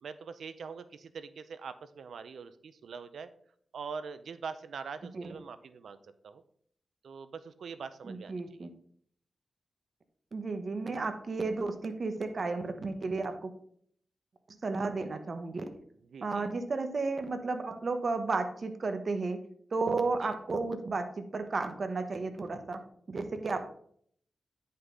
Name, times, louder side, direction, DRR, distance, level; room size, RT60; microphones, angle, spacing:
voice 1, 0.0-3.3 3.7-6.4 7.0-8.7 15.9-16.5 20.2-20.3, right 5 dB, 85° right, 12 dB, 0.6 m, -43 dB
voice 2, 8.0-8.7 10.3-13.5 14.6-15.6 16.2-19.4 19.7-22.8 23.1-23.6, right 3 dB, 50° right, 8 dB, 1.0 m, -33 dB
9.6 x 5.7 x 3.8 m, 0.62 s
wide cardioid pair, 85°, 0 cm